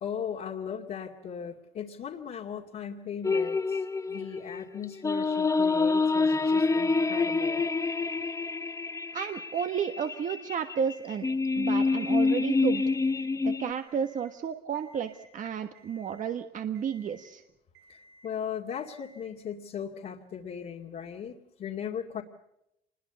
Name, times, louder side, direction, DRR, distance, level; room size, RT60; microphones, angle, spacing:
voice 1, 0.0-7.6 17.9-22.2, left 8 dB, 55° left, -1 dB, 2.3 m, -38 dB
sound 1, 3.2-13.7, left 3 dB, 20° left, 0.9 m, -27 dB
voice 2, 9.1-11.3 11.5-12.9 13.4-17.4, right 7 dB, 50° right, 7 dB, 1.4 m, -32 dB
Alarm, 10.7-11.3 11.7-12.3 12.7-13.3 13.7-14.3 14.7-15.3 15.7-16.3 16.7-17.3 17.7-18.3 18.7-19.3, right 1 dB, 85° right, 6.7 m, -58 dB
26.0 x 21.5 x 7.0 m, 0.82 s
cardioid pair, 110°, 17 cm